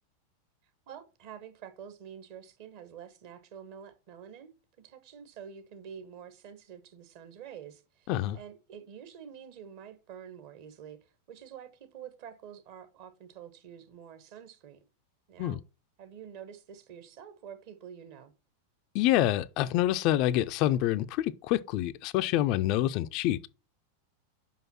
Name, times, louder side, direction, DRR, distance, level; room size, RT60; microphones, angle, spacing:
voice 1, 0.9-4.5 4.8-14.8 15.3-15.6 16.0-18.3, right 8 dB, 45° right, 1.2 m, -48 dB
voice 2, 18.9-23.5, left 13 dB, 40° left, 0.4 m, -27 dB
5.6 x 5.3 x 5.9 m
figure-of-eight pair, 90°, 0 cm